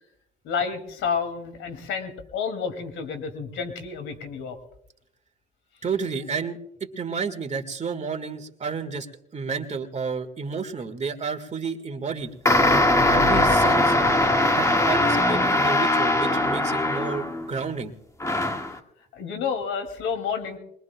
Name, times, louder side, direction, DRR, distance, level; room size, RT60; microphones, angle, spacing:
voice 1, 0.4-4.6 19.1-20.6, left 6 dB, 90° left, 7 dB, 2.5 m, -30 dB
voice 2, 5.8-9.1 9.3-12.3 13.1-14.0 14.5-17.9, right 5 dB, 35° right, 6 dB, 1.7 m, -31 dB
sound 1, 12.4-17.5 18.2-18.7, left 1 dB, 15° left, 1.7 m, -21 dB
22.5 x 21.5 x 2.3 m, 0.78 s
cardioid pair, 90°, 20 cm